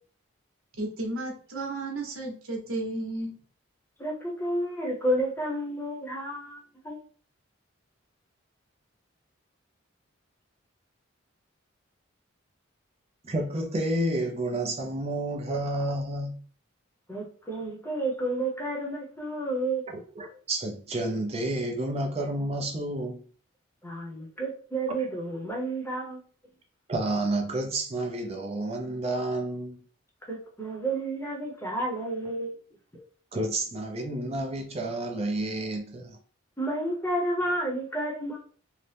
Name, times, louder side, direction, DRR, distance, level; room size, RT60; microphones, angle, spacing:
voice 1, 0.7-3.3, right 2 dB, 80° right, 0.9 m, -33 dB
voice 2, 4.0-7.0 17.1-19.8 23.8-26.2 30.3-32.5 36.6-38.4, right 1 dB, 10° left, 0.7 m, -31 dB
voice 3, 13.2-16.3 19.9-23.2 25.0-25.1 26.9-29.8 32.9-33.0 33.3-36.2, right 1 dB, 30° right, 0.4 m, -30 dB
2.7 x 2.1 x 3.3 m
head